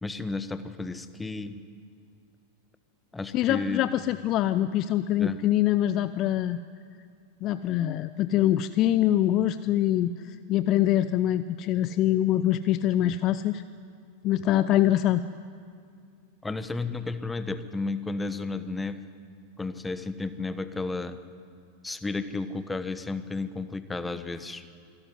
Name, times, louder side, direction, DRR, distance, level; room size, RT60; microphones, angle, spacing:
voice 1, 0.0-1.6 3.1-3.8 5.2-5.4 16.4-19.1 19.6-21.2 21.8-24.6, left 3 dB, 10° left, 11 dB, 1.1 m, -33 dB
voice 2, 3.3-6.6 7.4-13.6 14.2-15.2, left 12 dB, 35° left, 14 dB, 0.5 m, -24 dB
25.5 x 13.0 x 9.6 m, 2.3 s
figure-of-eight pair, 90°, 0 cm